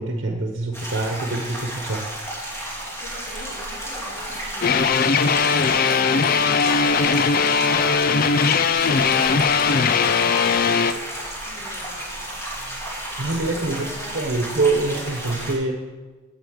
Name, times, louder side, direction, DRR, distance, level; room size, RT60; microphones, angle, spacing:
voice 1, 0.0-2.0 13.2-13.9 14.1-15.8, right 3 dB, 60° right, 2 dB, 1.1 m, -25 dB
sound 1, 0.7-15.5, right 1 dB, 15° left, 3.3 m, -32 dB
voice 2, 3.0-7.9 8.7-10.8 11.4-12.1 13.2-14.2, equal, 60° left, -3 dB, 3.1 m, -42 dB
sound 2, 4.6-10.9, left 5 dB, 45° left, 0.4 m, -19 dB
8.2 x 8.1 x 7.9 m, 1.3 s
head